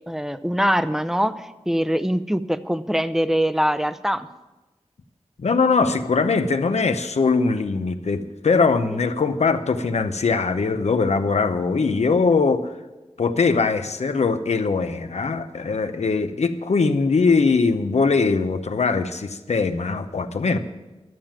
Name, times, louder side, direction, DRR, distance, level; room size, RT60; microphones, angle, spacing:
voice 1, 0.1-4.3, equal, 5° right, 12 dB, 0.6 m, -23 dB
voice 2, 5.4-12.7 13.2-20.6, left 4 dB, 80° left, 9 dB, 0.8 m, -21 dB
12.5 x 7.4 x 8.9 m, 1.1 s
wide cardioid pair, 60°, 11 cm